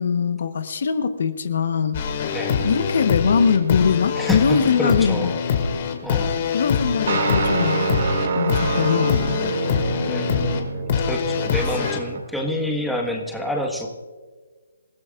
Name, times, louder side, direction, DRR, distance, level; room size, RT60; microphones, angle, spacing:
voice 1, 0.0-2.0 2.6-5.4 6.5-9.4, left 6 dB, 55° left, 9 dB, 1.1 m, -22 dB
sound 1, 1.9-12.0, left 6 dB, 40° left, 2.2 m, -24 dB
voice 2, 2.3-2.6 4.2-5.3 6.0-6.3 10.0-13.9, left 1 dB, ahead, 0 dB, 1.5 m, -28 dB
sound 2, 7.1-12.2, right 4 dB, 55° right, 2.5 m, -26 dB
28.0 x 15.5 x 2.5 m, 1.4 s
hypercardioid pair, 160°, 0 cm